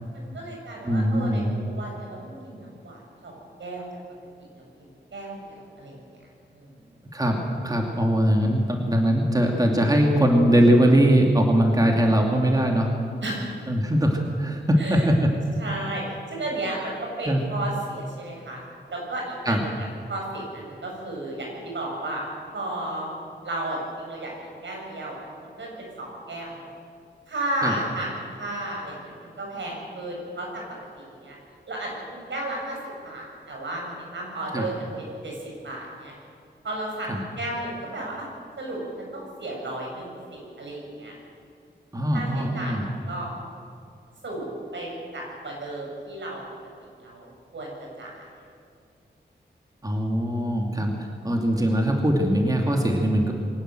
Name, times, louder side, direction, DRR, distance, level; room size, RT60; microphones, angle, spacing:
voice 1, 0.1-3.9 4.5-6.0 6.5-6.8 13.2-13.5 14.8-15.1 15.6-18.6 18.9-19.7 20.1-22.3 22.5-23.2 23.4-26.7 27.3-30.6 31.0-31.4 31.7-32.8 33.0-36.1 36.6-38.3 38.6-41.1 42.1-43.3 44.2-46.4 47.0-48.2, right 1 dB, 80° right, -1 dB, 7.3 m, -34 dB
voice 2, 0.8-1.5 7.1-7.4 7.6-12.9 13.7-15.3 17.3-17.4 19.5-19.6 27.6-27.7 34.5-34.7 37.1-37.2 41.9-42.8 49.8-50.9 51.2-53.3, equal, 20° right, 1 dB, 2.5 m, -21 dB
23.5 x 18.0 x 7.7 m, 2.3 s
wide cardioid pair, 100°, 19 cm